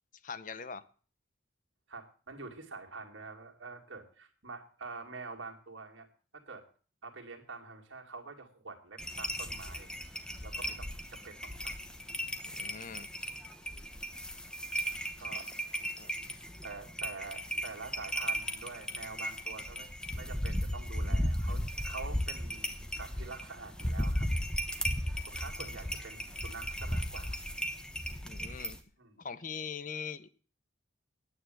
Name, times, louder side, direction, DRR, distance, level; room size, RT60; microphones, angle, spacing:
voice 1, 0.2-0.8 12.5-13.1 16.0-16.1 28.2-28.8 29.2-30.3, left 6 dB, 40° left, 14 dB, 0.7 m, -41 dB
voice 2, 1.9-6.1 6.3-6.6 7.0-10.0 10.4-11.8 12.6-12.8 15.2-15.6 16.6-22.7 23.0-24.3 25.3-27.4 29.0-29.2, right 4 dB, 80° right, 2 dB, 2.4 m, -46 dB
sound 1, 9.0-28.8, equal, 5° left, 0.9 m, -36 dB
9.4 x 9.2 x 7.7 m, 0.41 s
head